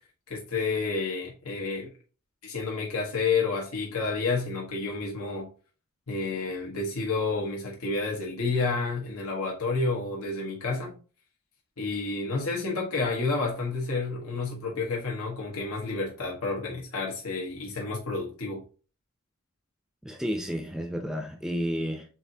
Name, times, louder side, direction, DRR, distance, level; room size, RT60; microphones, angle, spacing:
voice 1, 0.3-1.9 2.4-5.5 6.1-11.0 11.8-18.6, left 3 dB, 75° left, 1.2 m, -30 dB
voice 2, 20.0-22.1, equal, ahead, 0.6 m, -31 dB
6.9 x 2.6 x 2.8 m
head